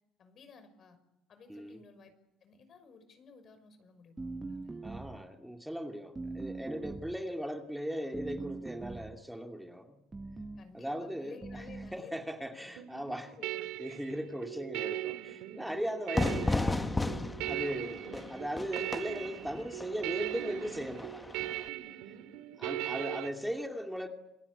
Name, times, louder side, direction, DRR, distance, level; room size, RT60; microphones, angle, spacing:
voice 1, 0.2-1.0 1.3-2.1 2.4-4.8 10.6-12.1 13.3-13.8, left 5 dB, 50° left, 10 dB, 6.0 m, -55 dB
sound 1, 4.2-5.3 6.1-7.3 8.1-9.2 10.1-10.7 11.4-12.0, right 3 dB, 20° right, 1.2 m, -42 dB
voice 2, 4.8-9.9 10.7-11.4 11.9-13.4 13.8-16.9 17.4-21.3 22.6-24.1, equal, 5° right, 3 dB, 2.6 m, -38 dB
sound 2, 12.8-23.3, right 15 dB, 90° right, 2.3 m, -39 dB
Fire / Fireworks, 16.1-21.7, left 2 dB, 15° left, 1.5 m, -34 dB
28.0 x 21.5 x 8.5 m, 0.88 s
supercardioid pair, 85°, 0 cm